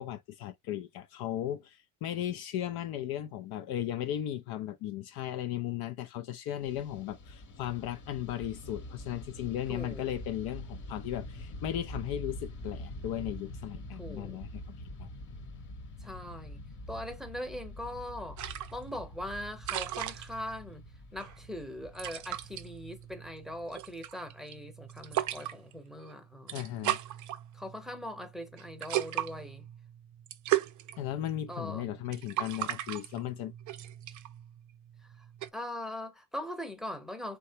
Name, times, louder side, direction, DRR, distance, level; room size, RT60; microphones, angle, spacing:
voice 1, 0.0-14.6 15.0-15.1 26.5-27.0 31.0-33.5, left 12 dB, 55° left, 0.5 m, -36 dB
Fixed-wing aircraft airplane, 6.6-24.0, left 1 dB, 40° left, 1.1 m, -45 dB
voice 2, 9.7-10.1 14.0-14.4 16.0-16.6 16.9-18.4 18.7-20.8 21.1-26.7 27.5-29.7 31.5-31.9 35.2-35.3 35.5-37.4, left 1 dB, ahead, 0.8 m, -41 dB
sound 1, 18.4-35.5, right 13 dB, 40° right, 0.5 m, -38 dB
3.1 x 2.2 x 2.7 m
hypercardioid pair, 75°, 47 cm